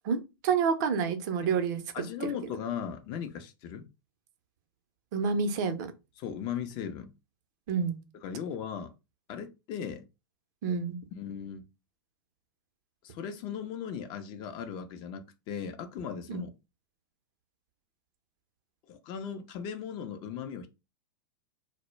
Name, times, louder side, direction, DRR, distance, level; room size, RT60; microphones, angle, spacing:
voice 1, 0.0-1.8 5.1-5.9 7.7-8.0 10.6-11.0 16.3-16.4, right 6 dB, 50° right, 0.5 m, -28 dB
voice 2, 1.9-3.9 6.2-7.1 8.2-8.9 9.3-10.1 11.1-11.6 13.0-16.5 18.9-20.7, left 7 dB, 40° left, 0.4 m, -37 dB
2.1 x 2.0 x 3.0 m
hypercardioid pair, 105°, 12 cm